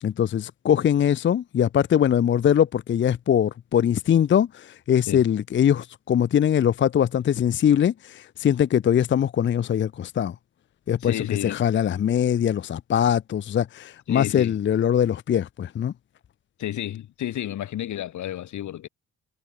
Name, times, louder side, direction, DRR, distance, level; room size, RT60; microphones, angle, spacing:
voice 1, 0.0-10.3 10.9-15.9, left 9 dB, 40° left, 0.5 m, -22 dB
voice 2, 11.0-11.6 14.1-14.6 16.6-18.9, left 12 dB, 70° left, 1.3 m, -31 dB
cardioid pair, 75°, 30 cm